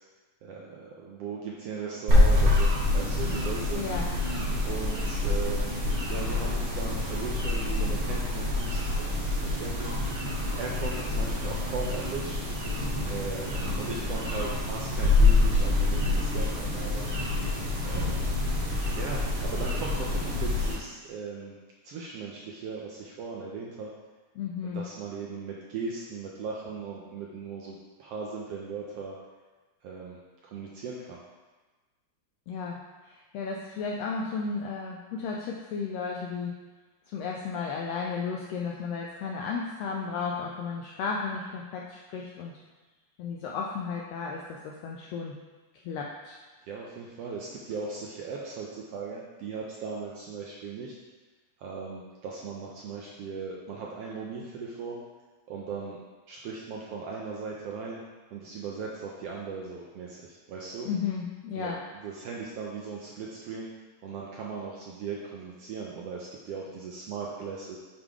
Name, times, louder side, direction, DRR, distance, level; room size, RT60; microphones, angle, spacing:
voice 1, 0.4-3.8 4.6-5.7 6.1-10.0 10.5-12.4 13.1-17.1 17.8-18.3 19.0-21.6 21.8-23.9 24.7-29.2 29.8-31.2 46.7-50.9 51.6-55.0 55.5-56.0 56.3-58.0 58.3-60.9 61.6-63.7 64.0-67.8, right 4 dB, 80° right, -3 dB, 1.4 m, -38 dB
sound 1, 2.1-20.7, left 2 dB, 50° right, 2.2 m, -26 dB
voice 2, 3.7-4.1 24.4-24.8 32.5-32.8 33.0-36.5 37.1-42.5 43.2-45.4 45.8-46.4 60.8-61.8, left 5 dB, 90° left, -1 dB, 1.4 m, -34 dB
6.9 x 3.8 x 4.8 m, 1.3 s
omnidirectional pair, 3.5 m